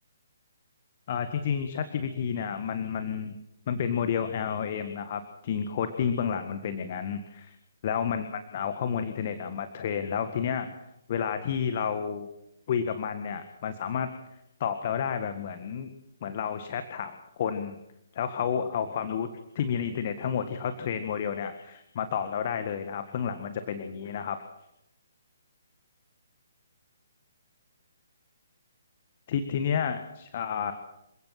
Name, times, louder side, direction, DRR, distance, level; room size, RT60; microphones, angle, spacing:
voice 1, 1.1-3.4 3.7-7.6 7.8-8.3 8.5-10.7 11.1-12.3 12.7-14.1 14.6-15.9 16.2-17.8 18.1-19.3 19.6-24.4 29.3-30.7, left 7 dB, 45° left, 8 dB, 1.8 m, -30 dB
27.5 x 16.5 x 6.0 m, 0.83 s
figure-of-eight pair, 135°, 0 cm